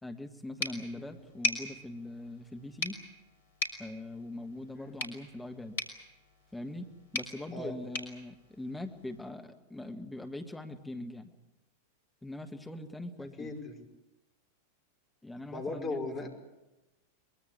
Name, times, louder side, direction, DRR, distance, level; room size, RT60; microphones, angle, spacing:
voice 1, 0.0-3.0 3.8-5.8 6.5-6.9 7.1-11.3 12.2-13.5 15.2-16.0, left 1 dB, 5° left, 5 dB, 1.8 m, -42 dB
sound 1, 0.6-9.3, left 3 dB, 60° left, 4.2 m, -40 dB
voice 2, 13.4-13.8 15.5-16.3, left 3 dB, 25° left, 4 dB, 5.5 m, -38 dB
23.0 x 22.0 x 8.4 m, 0.99 s
figure-of-eight pair, 90°, 0 cm